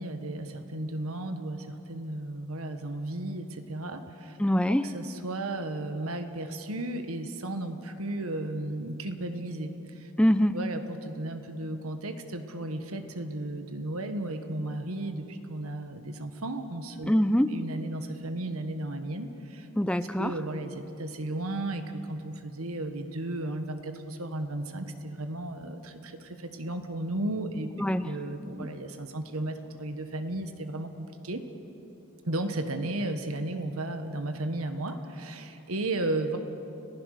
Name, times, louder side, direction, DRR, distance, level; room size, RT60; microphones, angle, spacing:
voice 1, 0.0-4.4 4.7-10.1 10.5-17.2 17.5-19.7 20.2-27.7 28.0-31.4 32.3-36.4, right 1 dB, 80° right, 7 dB, 1.5 m, -34 dB
voice 2, 4.4-4.9 10.2-10.6 17.1-17.5 19.8-20.3 27.8-28.1 28.6-28.7, equal, 5° left, 11 dB, 0.5 m, -24 dB
30.0 x 15.0 x 6.7 m, 3.0 s
head